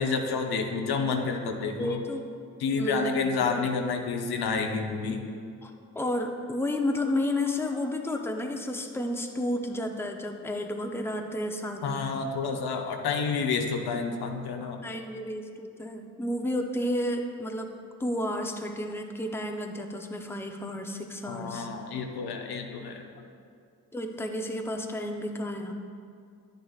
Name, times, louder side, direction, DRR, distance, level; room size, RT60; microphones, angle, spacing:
voice 1, 0.0-2.0 2.6-5.2 11.8-14.8 21.3-23.0, left 4 dB, 70° left, 3 dB, 0.8 m, -29 dB
voice 2, 1.8-2.2 2.7-3.4 5.6-12.0 14.8-17.7 18.0-21.7 23.9-25.7, left 1 dB, 5° left, 3 dB, 0.7 m, -31 dB
9.8 x 6.5 x 2.4 m, 2.3 s
supercardioid pair, 45°, 39 cm